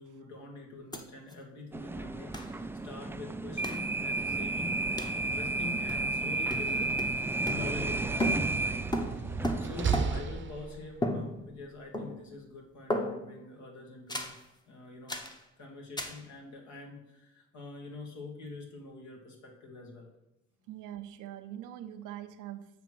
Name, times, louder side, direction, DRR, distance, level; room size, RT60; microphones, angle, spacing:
voice 1, 0.0-8.9 9.2-9.3 9.6-14.3 14.7-15.2 15.6-20.1, left 3 dB, 70° left, 0 dB, 1.8 m, -45 dB
sound 1, 0.9-1.0 1.3-1.4 2.3-2.6 3.6-3.9 5.0-5.2 5.9-6.2 6.5-7.9 8.2-10.4 11.0-11.7 11.9-12.4 12.9-13.4 14.1-14.4 15.1-15.4 16.0-16.2, equal, 15° left, 0.9 m, -35 dB
sound 2, 1.7-10.3, right 2 dB, 10° right, 0.3 m, -33 dB
Slam, 6.4-11.1, right 6 dB, 40° right, 0.8 m, -36 dB
voice 2, 20.7-22.8, right 11 dB, 85° right, 9 dB, 0.7 m, -43 dB
8.6 x 3.0 x 6.1 m, 0.91 s
cardioid pair, 90°, 30 cm